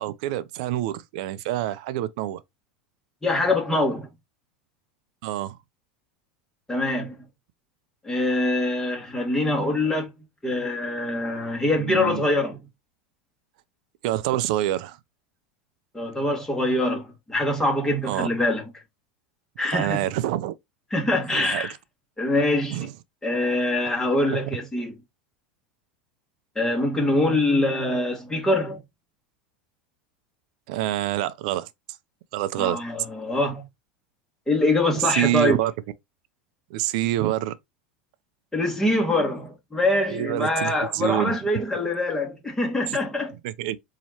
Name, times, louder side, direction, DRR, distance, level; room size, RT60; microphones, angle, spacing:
voice 1, 0.0-2.4 5.2-5.6 11.8-12.2 14.0-15.0 18.0-18.3 19.7-20.5 21.3-21.7 22.7-22.9 23.8-23.9 30.7-31.7 32.3-32.8 34.9-35.7 36.7-37.5 40.1-41.3 42.9-43.0 43.4-43.8, right 14 dB, 60° right, 0.4 m, -26 dB
voice 2, 3.2-4.1 6.7-7.2 8.0-10.1 10.4-12.6 15.9-18.6 19.6-20.0 20.9-21.7 22.2-22.9 23.2-24.9 26.5-28.8 32.6-33.6 34.5-35.6 38.5-43.3, left 1 dB, 10° left, 1.7 m, -24 dB
4.1 x 2.9 x 2.8 m
hypercardioid pair, 85°, 5 cm